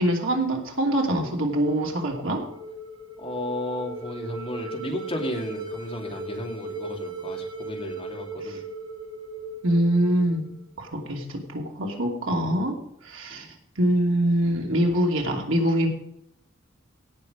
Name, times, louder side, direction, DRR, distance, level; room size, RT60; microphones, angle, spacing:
voice 1, 0.0-2.4 9.6-10.5 10.8-12.8 13.0-13.5 13.8-15.9, right 1 dB, 80° right, 1 dB, 2.8 m, -24 dB
sound 1, 1.5-10.6, right 1 dB, 25° right, 2.8 m, -37 dB
voice 2, 3.2-8.7 13.3-13.5, equal, 30° left, 1 dB, 2.6 m, -34 dB
17.5 x 6.5 x 5.1 m, 0.75 s
head